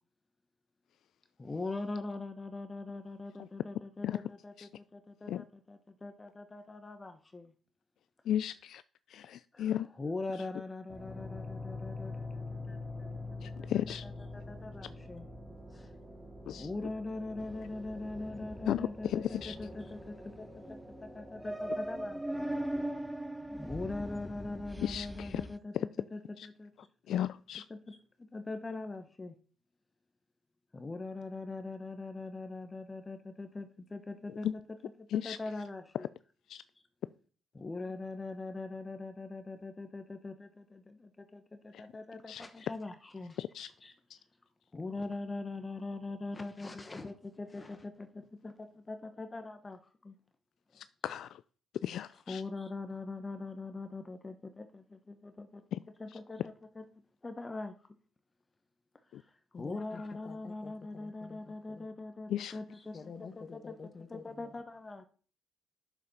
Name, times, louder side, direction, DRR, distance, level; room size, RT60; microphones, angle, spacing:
voice 1, 1.4-7.5 9.5-13.1 13.6-15.3 15.7-15.9 16.6-22.5 23.6-26.9 27.6-29.3 30.7-36.1 37.5-44.2 44.7-50.2 51.9-55.6 56.0-56.8 57.2-57.7 59.1-63.6 64.1-65.1, left 3 dB, 25° left, 1.1 m, -42 dB
voice 2, 8.3-8.8 9.1-9.9 13.4-14.0 16.5-16.7 18.7-19.5 24.8-25.4 27.1-27.6 35.1-35.4 36.5-36.6 42.3-42.4 43.4-43.7 51.0-51.3 51.8-52.4 59.1-59.2 62.3-62.5, left 11 dB, 75° left, 0.4 m, -34 dB
sound 1, 10.9-22.9, left 2 dB, 20° right, 2.8 m, -45 dB
sound 2, 17.4-25.6, right 1 dB, 5° right, 0.7 m, -41 dB
voice 3, 59.5-61.9 62.9-64.5, left 5 dB, 40° left, 1.6 m, -49 dB
9.8 x 6.9 x 5.6 m
cardioid pair, 90°, 0 cm